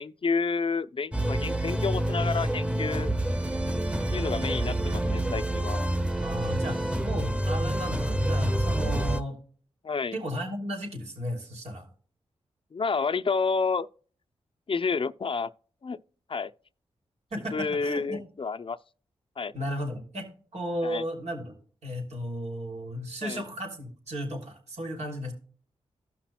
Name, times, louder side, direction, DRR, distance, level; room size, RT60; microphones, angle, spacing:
voice 1, 0.0-3.1 4.1-5.9 9.8-10.1 12.7-13.9 14.7-15.5 15.8-16.0 16.3-16.5 17.5-18.8 19.4-19.5 20.8-21.0 23.2-23.4, left 4 dB, 50° left, 0.6 m, -30 dB
sound 1, 1.1-9.2, right 1 dB, 10° right, 1.2 m, -27 dB
voice 2, 6.1-9.4 10.1-11.9 17.3-18.2 19.5-20.3 20.5-21.5 21.8-25.3, equal, 70° right, 3.0 m, -34 dB
15.5 x 5.9 x 2.3 m
cardioid pair, 45°, 12 cm